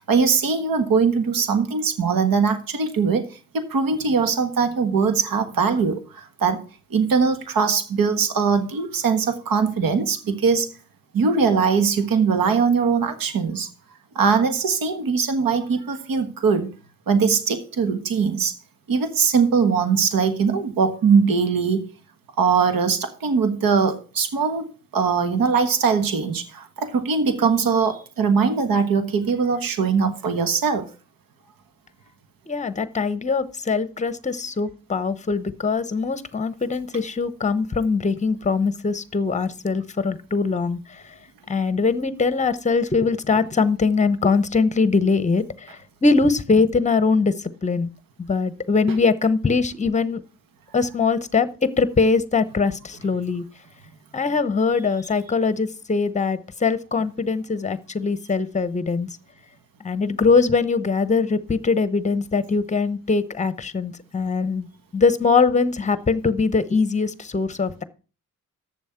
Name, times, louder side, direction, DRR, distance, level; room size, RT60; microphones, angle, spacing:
voice 1, 0.0-6.6 6.9-10.7 11.1-13.7 14.1-16.7 17.1-18.5 18.9-21.9 22.4-24.7 24.9-30.9 41.5-41.8, right 5 dB, 80° right, 1.5 m, -21 dB
voice 2, 32.5-41.0 41.5-45.8 46.0-47.3 47.6-47.9 48.2-50.2 50.7-53.4 54.1-59.1 59.8-64.7 64.9-67.8, left 4 dB, 20° left, 0.8 m, -22 dB
8.4 x 7.1 x 5.8 m
cardioid pair, 75°, 34 cm